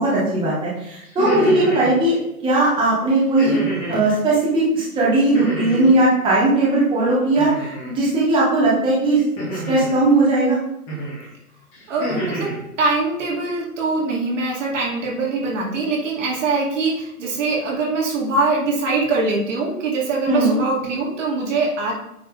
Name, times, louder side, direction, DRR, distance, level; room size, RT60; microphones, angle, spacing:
voice 1, 0.0-2.2 2.4-3.6 3.9-9.2 9.5-10.6 20.3-20.6, right 2 dB, 10° right, -7 dB, 1.6 m, -18 dB
sound 1, 1.0-1.9 3.4-4.1 5.3-6.0 7.4-7.9 9.4-10.0 10.9-11.2 11.7-12.6, right 1 dB, 5° left, 0.5 m, -27 dB
voice 2, 11.9-12.5 12.8-21.9, right 3 dB, 50° right, -2 dB, 2.5 m, -23 dB
9.1 x 4.3 x 3.6 m, 0.81 s
hypercardioid pair, 140°, 46 cm